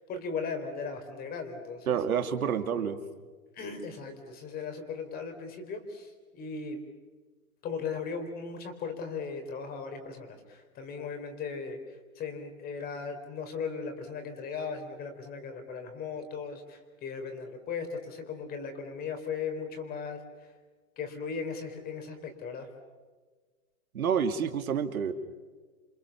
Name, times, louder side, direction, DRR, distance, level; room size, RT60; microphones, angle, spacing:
voice 1, 0.0-2.0 2.7-2.8 3.5-6.8 7.6-20.2 21.0-22.7, left 5 dB, 20° left, 7 dB, 4.1 m, -37 dB
voice 2, 1.9-3.0 23.9-25.1, right 7 dB, 80° right, 8 dB, 2.7 m, -28 dB
28.5 x 26.0 x 7.1 m, 1.4 s
hypercardioid pair, 150°, 42 cm